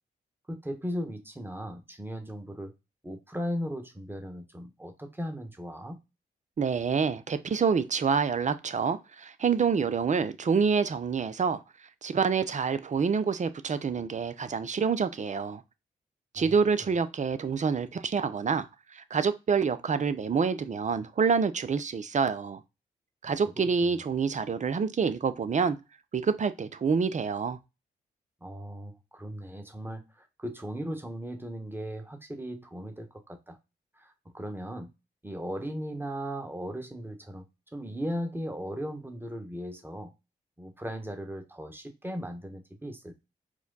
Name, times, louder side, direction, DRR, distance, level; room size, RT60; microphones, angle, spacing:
voice 1, 0.5-2.7 3.0-6.0 16.3-16.8 23.6-23.9 28.4-33.6 34.0-34.9 35.2-37.4 37.7-40.1 40.6-43.1, equal, 10° right, 1.3 m, -37 dB
voice 2, 6.6-11.6 12.0-15.6 16.3-18.7 18.9-22.6 23.2-25.8 26.1-27.6, right 5 dB, 40° right, 0.6 m, -27 dB
4.8 x 2.2 x 3.9 m
supercardioid pair, 45°, 19 cm